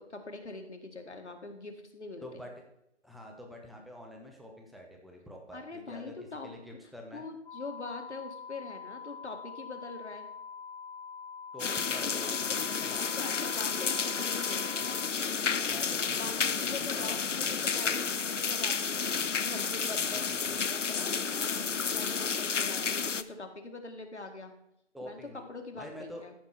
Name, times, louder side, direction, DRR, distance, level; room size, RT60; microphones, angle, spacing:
voice 1, 0.0-2.3 5.5-6.5 7.1-10.3 12.0-12.1 12.5-15.1 16.2-24.5 25.0-25.2 25.5-26.3, left 3 dB, 70° left, 5 dB, 1.8 m, -43 dB
voice 2, 2.2-2.6 3.0-6.2 6.4-7.2 11.5-13.0 15.7-17.9 20.3-20.6 24.9-25.4 25.8-26.3, equal, ahead, 1 dB, 0.5 m, -47 dB
sound 1, 7.5-15.1, left 6 dB, 45° left, 1.3 m, -45 dB
sound 2, 11.6-23.2, left 6 dB, 90° left, 0.7 m, -31 dB
14.0 x 4.8 x 4.4 m, 0.79 s
figure-of-eight pair, 170°, 36 cm